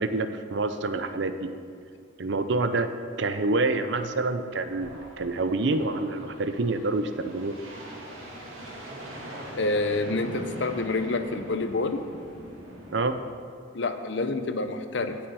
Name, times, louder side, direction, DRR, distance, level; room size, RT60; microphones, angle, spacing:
voice 1, 0.0-1.5 2.2-2.9 3.2-7.6 12.9-13.2, right 3 dB, 60° right, 10 dB, 0.6 m, -27 dB
sound 1, 4.5-13.2, right 1 dB, 90° right, 2.4 m, -42 dB
voice 2, 9.5-12.0 13.7-15.3, left 2 dB, 60° left, 8 dB, 0.7 m, -28 dB
16.0 x 6.0 x 4.8 m, 2.2 s
head